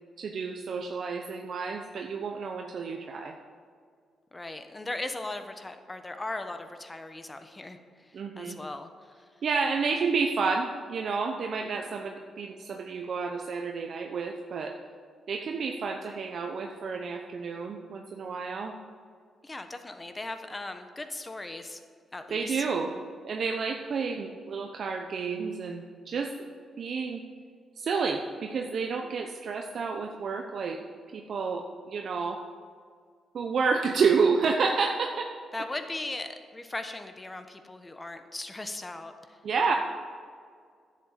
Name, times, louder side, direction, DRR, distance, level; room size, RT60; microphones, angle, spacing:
voice 1, 0.2-3.3 8.1-8.6 9.4-14.7 15.3-18.7 22.3-22.9 23.3-26.3 26.8-27.2 27.8-30.8 31.1-32.4 33.3-35.3 39.4-39.7, right 5 dB, 65° right, 2 dB, 0.8 m, -30 dB
voice 2, 4.3-9.4 19.4-21.8 22.1-22.6 35.5-39.4, left 2 dB, 20° left, 8 dB, 1.1 m, -38 dB
10.5 x 7.5 x 7.4 m, 2.1 s
cardioid pair, 80°, 0 cm